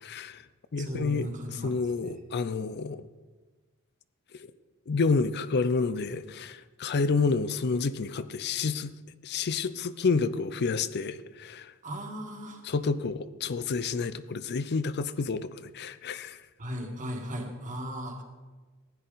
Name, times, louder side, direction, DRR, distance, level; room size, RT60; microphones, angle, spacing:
voice 1, 0.0-0.4 0.7-3.1 4.4-4.5 4.9-8.9 9.2-11.7 12.6-16.4, left 4 dB, 50° left, 0.5 m, -29 dB
voice 2, 0.8-2.2 11.8-12.6 16.6-18.2, equal, 35° right, 1.7 m, -37 dB
15.5 x 10.0 x 4.0 m
head